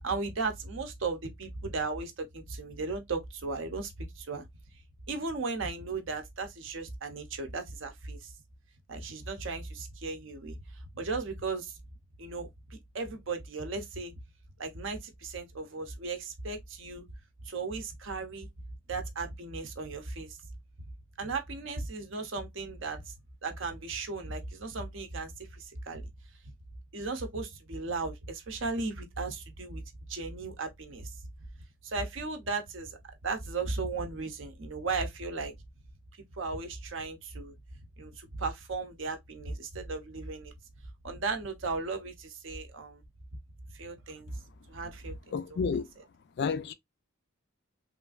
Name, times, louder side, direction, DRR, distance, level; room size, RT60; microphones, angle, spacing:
voice 1, 0.0-4.4 5.1-8.3 8.9-10.6 10.9-11.8 12.2-14.1 14.6-17.1 17.4-18.5 18.9-20.4 21.2-23.1 23.4-26.0 26.9-29.8 30.1-31.1 31.8-35.5 36.4-37.5 38.0-40.5 41.0-43.0 43.7-44.4 44.7-45.6 46.0-46.1, right 3 dB, 60° right, 0.6 m, -36 dB
voice 2, 45.3-45.9 46.4-46.7, left 5 dB, 50° left, 0.3 m, -30 dB
3.2 x 2.5 x 2.3 m
head